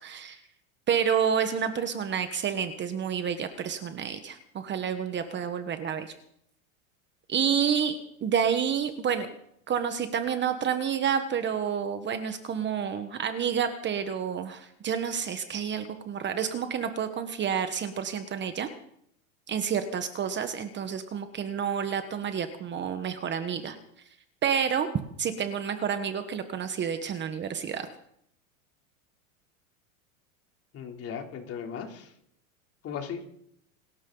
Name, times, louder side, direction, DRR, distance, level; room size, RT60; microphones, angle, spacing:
voice 1, 0.0-0.4 0.9-6.1 7.3-9.3 9.7-18.7 19.5-23.8 24.4-24.9 25.2-27.9, right 7 dB, 25° right, 9 dB, 1.3 m, -29 dB
voice 2, 30.7-32.1 32.8-33.3, left 7 dB, 35° left, 3 dB, 3.2 m, -37 dB
27.5 x 13.0 x 3.9 m, 0.71 s
supercardioid pair, 130°, 42 cm